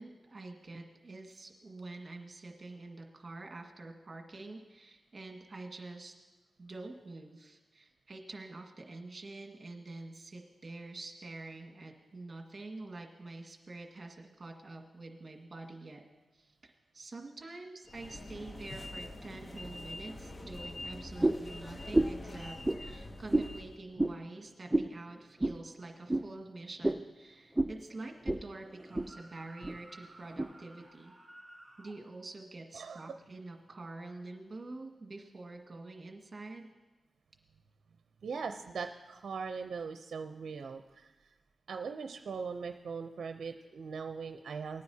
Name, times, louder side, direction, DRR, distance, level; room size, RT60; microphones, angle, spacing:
voice 1, 0.0-6.1 6.6-16.0 16.3-22.6 22.8-31.1 31.8-36.7, right 2 dB, 40° right, 1 dB, 1.8 m, -47 dB
sound 1, 17.9-23.8, left 1 dB, 35° left, 0.8 m, -45 dB
sound 2, 21.2-21.5 21.9-22.2 22.6-22.8 23.3-23.5 24.0-24.2 24.7-24.9 25.4-25.6 26.1-26.3 26.8-27.0 27.6-27.7 28.3-28.4 28.7-29.1 29.6-29.8 30.4-30.5, right 1 dB, 10° right, 0.5 m, -29 dB
sound 3, 28.6-32.0, right 1 dB, 10° left, 3.6 m, -56 dB
voice 2, 32.7-33.2 38.2-41.1 41.7-44.8, right 5 dB, 75° right, 6 dB, 0.5 m, -40 dB
19.5 x 9.5 x 2.8 m, 1.2 s
cardioid pair, 65°, 0 cm